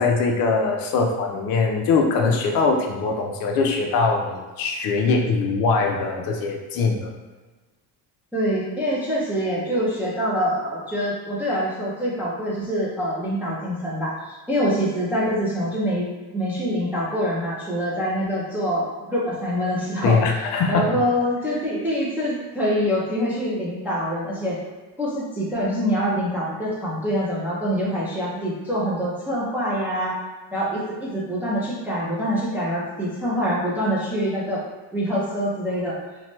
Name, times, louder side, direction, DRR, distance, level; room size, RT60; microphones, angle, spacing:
voice 1, 0.0-7.1 20.0-20.9, left 4 dB, 50° left, 2 dB, 0.5 m, -22 dB
voice 2, 8.3-16.1 16.3-20.2 20.7-24.6 25.0-30.2 30.5-34.6 34.9-36.0, equal, 5° right, -7 dB, 0.3 m, -25 dB
2.9 x 2.2 x 2.9 m, 1.3 s
cardioid pair, 130°, 44 cm